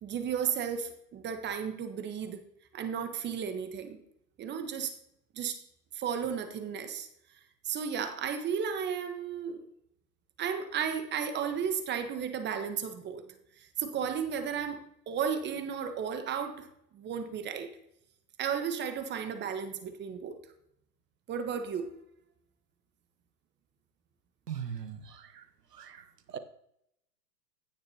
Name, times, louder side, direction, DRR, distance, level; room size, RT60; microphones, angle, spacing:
voice 1, 0.0-2.4 2.7-4.0 4.4-4.9 5.3-5.6 5.9-7.1 7.6-9.6 10.4-13.2 13.6-14.8 15.1-16.7 16.9-17.7 18.4-20.4 21.3-21.9, right 7 dB, 20° right, 8 dB, 1.2 m, -34 dB
voice 2, 24.5-25.4 25.8-26.0 26.3-26.4, right 8 dB, 85° right, 10 dB, 1.2 m, -39 dB
16.0 x 7.0 x 2.9 m, 0.75 s
hypercardioid pair, 115°, 47 cm